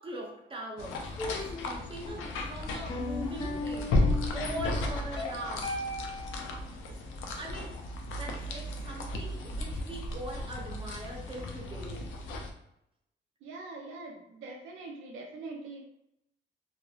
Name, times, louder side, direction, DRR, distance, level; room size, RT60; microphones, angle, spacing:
voice 1, 0.0-4.1 4.3-5.8 6.9-7.0 7.3-7.8 8.2-12.1, right 1 dB, 25° right, -1 dB, 0.7 m, -42 dB
sound 1, 0.8-12.5, left 2 dB, 80° left, 0.4 m, -34 dB
sound 2, 1.2-6.5, left 2 dB, 30° left, 0.6 m, -38 dB
voice 2, 13.4-15.8, right 3 dB, 90° right, 1 dB, 0.5 m, -43 dB
2.4 x 2.1 x 2.4 m, 0.80 s
cardioid pair, 90°, 20 cm